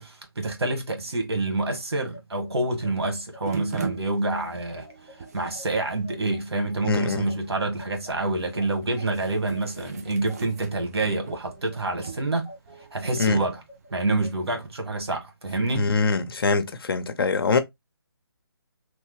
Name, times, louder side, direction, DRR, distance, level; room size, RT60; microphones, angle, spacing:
voice 1, 0.0-4.9 5.3-12.5 12.9-13.6 13.9-15.9, right 2 dB, 80° right, 1.5 m, -27 dB
sound 1, 1.4-10.8 11.2-14.3, left 1 dB, 20° right, 1.2 m, -48 dB
sound 2, 3.4-14.8, right 6 dB, 40° right, 0.5 m, -42 dB
voice 2, 6.8-7.3 13.2-13.4 15.8-17.6, left 4 dB, 65° left, 0.6 m, -23 dB
3.2 x 2.2 x 3.2 m
hypercardioid pair, 160°, 13 cm